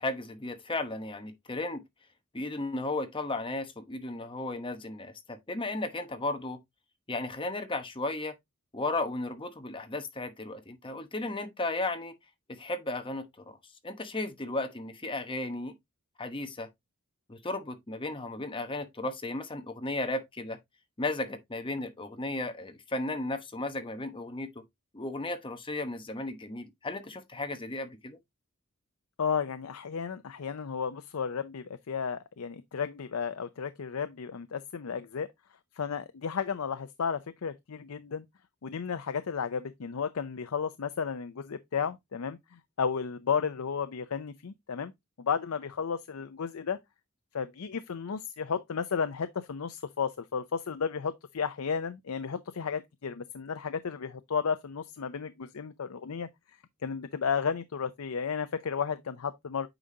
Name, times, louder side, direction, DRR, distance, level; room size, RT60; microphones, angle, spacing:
voice 1, 0.0-1.8 2.3-6.6 7.1-8.3 8.7-12.1 12.5-13.6 13.8-15.7 16.2-16.7 17.3-20.6 21.0-24.6 24.9-28.2, left 2 dB, 25° left, 1.0 m, -35 dB
voice 2, 29.2-35.3 35.7-38.2 38.6-44.9 45.2-46.8 47.3-56.3 56.8-59.7, left 6 dB, 80° left, 0.5 m, -33 dB
8.8 x 5.1 x 2.7 m
head